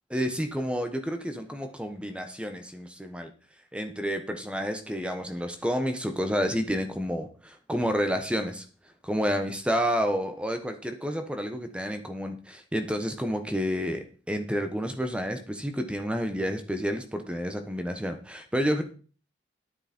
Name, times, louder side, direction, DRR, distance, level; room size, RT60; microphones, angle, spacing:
voice 1, 0.1-3.3 3.7-8.6 9.0-18.8, equal, 5° right, 6 dB, 1.1 m, -30 dB
10.5 x 8.8 x 4.4 m, 0.38 s
head